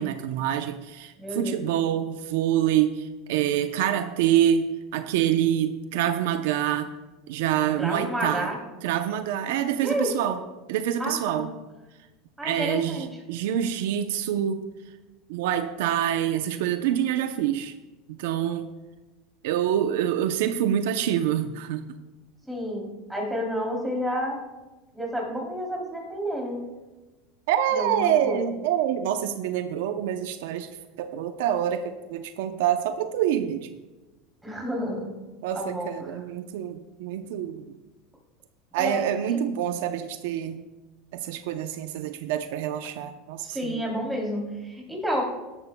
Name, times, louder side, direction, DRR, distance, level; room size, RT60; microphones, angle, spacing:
voice 1, 0.0-4.7 4.9-6.9 7.3-8.5 8.8-10.4 10.7-11.5 12.4-14.6 15.3-17.7 18.1-18.7 19.4-21.8 27.5-30.7 31.0-33.8 35.4-37.6 38.7-40.6 41.1-43.9, right 10 dB, 75° right, 9 dB, 0.6 m, -26 dB
voice 2, 1.2-1.7 7.8-8.6 9.8-10.1 11.0-11.5 12.4-13.1 22.4-24.4 24.9-26.6 27.7-28.4 34.4-35.1 35.5-36.2 38.8-39.4 43.4-45.2, equal, 5° right, -2 dB, 3.0 m, -30 dB
16.0 x 11.5 x 2.2 m, 1.2 s
supercardioid pair, 135°, 0 cm